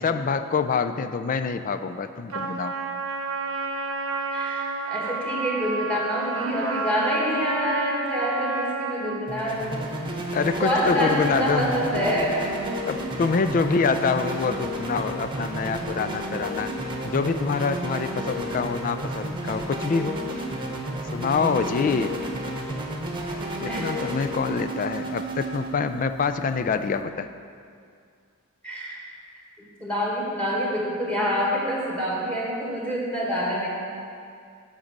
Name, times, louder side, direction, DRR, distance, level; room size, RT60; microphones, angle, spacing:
voice 1, 0.0-2.7 10.3-11.7 12.9-16.7 17.0-20.2 21.1-22.2 23.6-27.3, left 5 dB, 40° left, 10 dB, 0.3 m, -26 dB
Trumpet, 2.3-9.2, right 3 dB, 65° right, 0.8 m, -30 dB
voice 2, 4.3-10.1 10.6-12.6 23.7-23.9 28.6-29.0 29.6-33.7, equal, 5° left, -4 dB, 1.6 m, -26 dB
sound 1, 9.3-27.0, right 1 dB, 20° right, 1.0 m, -32 dB
8.1 x 5.2 x 7.3 m, 2.3 s
head